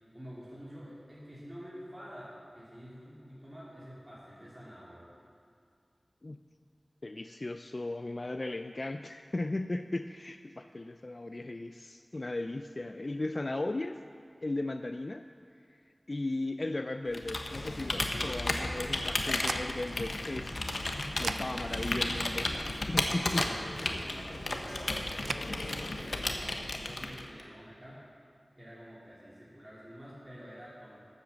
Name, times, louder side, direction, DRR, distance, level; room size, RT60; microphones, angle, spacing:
voice 1, 0.1-5.1 23.4-28.0 28.6-31.0, equal, 15° right, -9 dB, 2.9 m, -48 dB
voice 2, 7.0-14.0 14.4-15.3 16.1-20.7 21.0-23.5, left 2 dB, 45° left, 8 dB, 0.4 m, -36 dB
Computer keyboard, 17.1-27.4, left 2 dB, 75° left, 1.0 m, -34 dB
sound 1, 18.9-25.4, right 3 dB, 90° right, 0.4 m, -43 dB
12.5 x 8.1 x 7.2 m, 2.3 s
wide cardioid pair, 60°, 0 cm